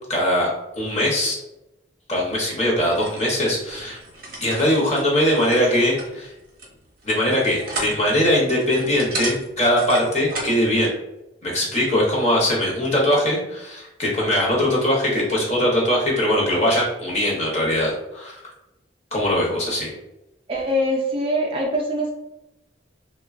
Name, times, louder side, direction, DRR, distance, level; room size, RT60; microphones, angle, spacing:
voice 1, 0.1-0.5 0.8-1.4 2.1-4.0 4.4-6.3 7.0-10.9 11.4-18.4 19.1-19.9, left 1 dB, 35° left, -3 dB, 0.7 m, -21 dB
sound 1, 2.7-10.6, right 2 dB, 50° right, 0.7 m, -35 dB
voice 2, 20.5-22.1, equal, 30° right, -1 dB, 0.3 m, -23 dB
3.1 x 2.1 x 2.4 m, 0.92 s
head